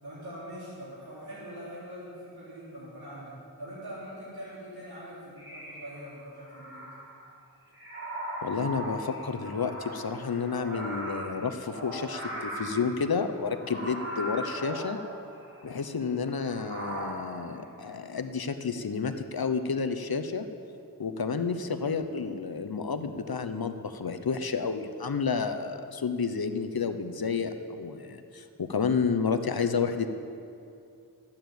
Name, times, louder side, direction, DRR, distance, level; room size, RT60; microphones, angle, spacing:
voice 1, 0.0-6.9, equal, 85° right, -12 dB, 4.0 m, -43 dB
sound 1, 5.4-7.3 7.7-16.1 16.4-17.4, equal, 35° right, 3.6 m, -39 dB
voice 2, 8.4-15.0 15.6-20.4 21.0-30.1, left 5 dB, 75° left, 8 dB, 0.9 m, -30 dB
12.5 x 8.8 x 7.9 m, 2.6 s
wide cardioid pair, 55°, 37 cm